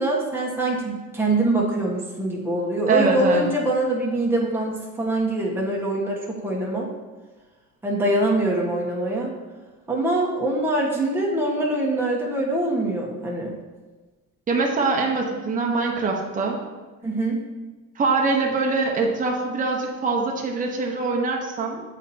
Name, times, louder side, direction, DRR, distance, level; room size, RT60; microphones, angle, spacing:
voice 1, 0.0-6.9 7.8-9.3 9.9-13.5 17.0-17.4, right 1 dB, 5° right, -3 dB, 1.3 m, -24 dB
voice 2, 2.9-3.5 14.5-16.6 18.0-21.8, right 3 dB, 25° right, -1 dB, 0.9 m, -23 dB
8.1 x 4.2 x 2.8 m, 1.3 s
cardioid pair, 110°, 34 cm